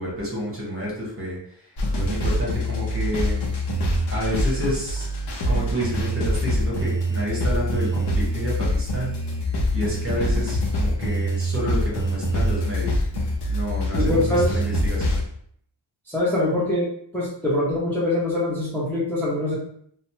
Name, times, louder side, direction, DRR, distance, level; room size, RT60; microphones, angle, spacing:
voice 1, 0.0-1.4 2.0-3.5 4.1-5.1 5.4-9.1 9.7-13.0 13.5-15.2, equal, 30° right, -4 dB, 1.0 m, -29 dB
sound 1, 1.8-15.3, equal, 60° left, 0.6 m, -24 dB
voice 2, 13.9-14.6 16.1-16.9 17.1-19.5, left 1 dB, 5° left, -7 dB, 0.6 m, -23 dB
2.9 x 2.1 x 2.7 m, 0.66 s
wide cardioid pair, 130°, 48 cm